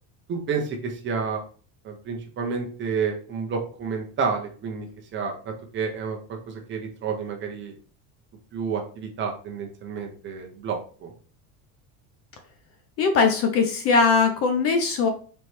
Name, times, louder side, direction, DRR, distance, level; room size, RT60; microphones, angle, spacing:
voice 1, 0.3-1.4 1.8-4.9 5.1-6.2 6.5-7.7 8.5-11.1, right 5 dB, 30° right, 2 dB, 0.7 m, -30 dB
voice 2, 13.0-15.1, left 4 dB, 35° left, 6 dB, 0.5 m, -20 dB
4.2 x 3.1 x 3.1 m, 0.40 s
cardioid pair, 165°, 42 cm